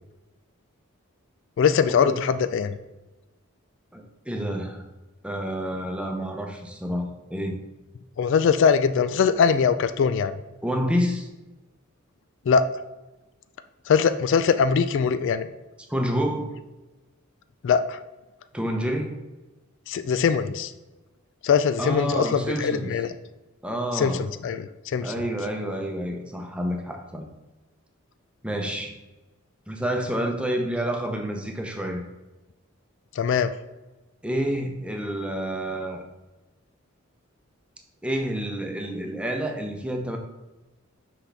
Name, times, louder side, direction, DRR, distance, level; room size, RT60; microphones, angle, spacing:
voice 1, 1.6-2.7 8.2-10.3 12.5-12.6 13.9-15.5 17.6-18.0 19.9-20.7 21.4-23.1 23.9-25.1 33.2-33.5, left 6 dB, 60° left, 11 dB, 0.3 m, -22 dB
voice 2, 3.9-4.8 5.2-7.6 10.6-11.3 15.9-16.5 18.5-19.2 21.8-22.9 23.6-24.3 25.0-27.3 28.4-28.9 29.7-32.0 34.2-36.0 38.0-40.2, equal, 5° right, 3 dB, 0.8 m, -28 dB
6.1 x 5.7 x 3.4 m, 1.1 s
head